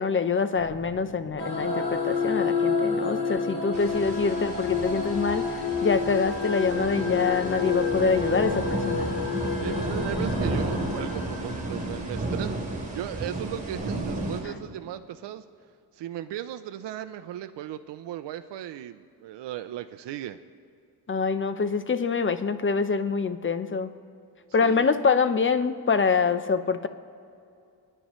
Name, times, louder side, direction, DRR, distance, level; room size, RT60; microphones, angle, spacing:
voice 1, 0.0-9.1 21.1-23.9 24.5-26.9, left 5 dB, 30° left, 11 dB, 0.7 m, -25 dB
sound 1, 0.5-3.9, left 1 dB, 85° left, 3.3 m, -52 dB
sound 2, 1.4-12.3, left 5 dB, 70° left, 3.3 m, -29 dB
sound 3, 3.7-14.4, right 2 dB, 20° right, 3.6 m, -32 dB
voice 2, 9.6-15.4 15.9-20.4 24.6-24.9, right 12 dB, 85° right, 9 dB, 0.6 m, -37 dB
29.5 x 10.0 x 3.1 m, 2.5 s
cardioid pair, 85°, 41 cm